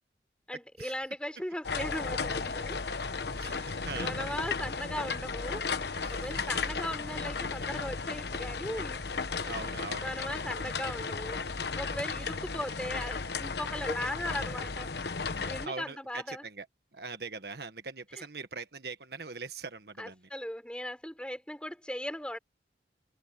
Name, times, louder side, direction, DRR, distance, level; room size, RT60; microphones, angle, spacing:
voice 1, 0.5-2.8 3.5-5.6 6.1-9.0 10.0-11.4 11.8-14.9 15.4-16.4 18.2-18.3 20.0-22.4, left 1 dB, 5° left, 4.0 m, -38 dB
sound 1, 1.6-15.7, left 4 dB, 70° left, 1.1 m, -35 dB
voice 2, 3.4-4.2 6.0-6.3 9.4-10.1 12.1-12.3 15.6-16.7 16.9-20.2, right 4 dB, 65° right, 1.5 m, -42 dB
head